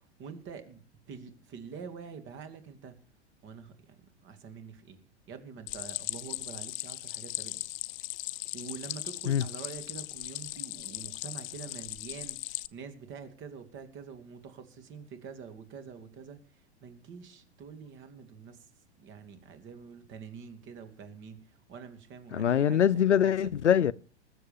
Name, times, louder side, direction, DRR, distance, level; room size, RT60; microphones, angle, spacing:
voice 1, 0.0-3.0 3.4-7.6 8.5-18.7 19.0-23.3, right 6 dB, 35° right, 2.7 m, -46 dB
Stream, 5.7-12.7, left 20 dB, 35° left, 0.6 m, -38 dB
voice 2, 22.3-23.9, left 9 dB, 85° left, 0.6 m, -23 dB
20.0 x 7.7 x 7.3 m
figure-of-eight pair, 95°, 34 cm